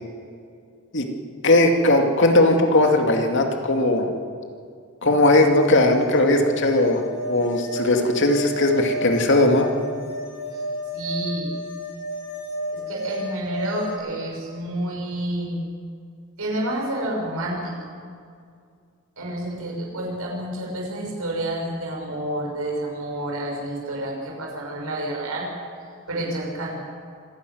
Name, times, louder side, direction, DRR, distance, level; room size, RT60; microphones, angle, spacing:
voice 1, 1.4-4.1 5.0-7.0 7.3-9.7, left 2 dB, 55° left, 3 dB, 2.4 m, -18 dB
sound 1, 5.4-13.9, equal, 75° left, 7.6 m, -32 dB
voice 2, 10.9-11.5 12.7-15.6 16.4-17.7 19.2-25.5 26.1-26.8, right 1 dB, 75° right, -2 dB, 5.9 m, -29 dB
26.0 x 11.5 x 9.4 m, 2.2 s
head